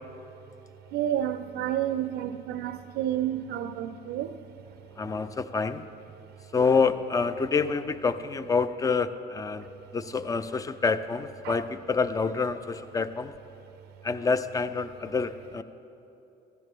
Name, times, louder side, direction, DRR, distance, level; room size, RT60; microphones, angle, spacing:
voice 1, 0.9-4.4 11.4-11.6, right 11 dB, 85° right, 0.5 m, -30 dB
voice 2, 5.0-5.9 6.5-9.7 9.9-13.3 14.0-15.6, left 4 dB, 20° left, 0.5 m, -27 dB
15.5 x 15.0 x 3.6 m
cardioid pair, 110°, 17 cm